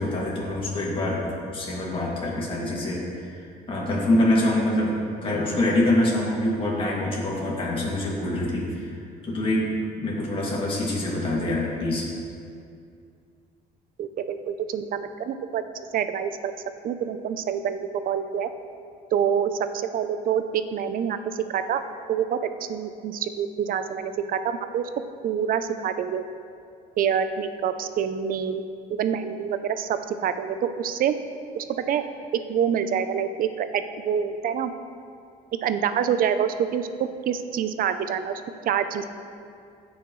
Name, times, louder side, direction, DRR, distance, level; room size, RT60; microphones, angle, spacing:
voice 1, 0.0-4.9 5.2-9.7 10.0-12.0, left 1 dB, 30° left, -5 dB, 2.4 m, -25 dB
voice 2, 14.0-15.6 15.9-16.5 16.8-18.5 19.1-21.8 22.1-22.4 22.7-24.9 25.2-26.2 27.0-28.6 28.9-31.2 31.5-32.0 32.5-34.7 35.6-39.0, right 8 dB, 55° right, 10 dB, 0.6 m, -26 dB
16.0 x 6.3 x 3.2 m, 2.4 s
cardioid pair, 110°, 17 cm